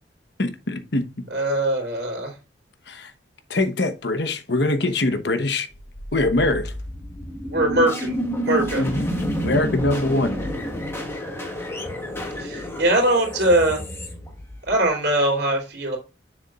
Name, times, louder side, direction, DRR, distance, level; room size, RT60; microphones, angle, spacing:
voice 1, 0.4-1.0 2.9-3.1 3.5-5.7 6.1-6.7 8.8-9.1 9.4-10.4, left 2 dB, 60° left, 1.0 m, -23 dB
voice 2, 1.3-2.3 7.5-8.1 8.4-8.8 12.4-13.8 14.7-16.0, right 1 dB, 55° right, 3.0 m, -21 dB
sound 1, 5.7-14.9, equal, 15° left, 1.4 m, -29 dB
7.2 x 6.7 x 2.4 m
head